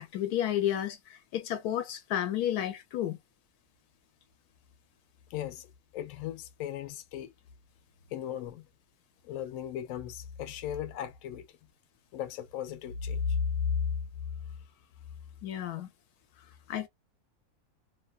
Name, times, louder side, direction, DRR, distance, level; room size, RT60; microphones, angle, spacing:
voice 1, 0.0-3.2 15.4-15.9 16.7-16.9, left 11 dB, 90° left, 1.1 m, -31 dB
voice 2, 5.3-7.3 8.1-8.6 9.2-11.5 12.1-13.5, left 8 dB, 70° left, 0.9 m, -36 dB
2.8 x 2.2 x 2.3 m
omnidirectional pair, 1.6 m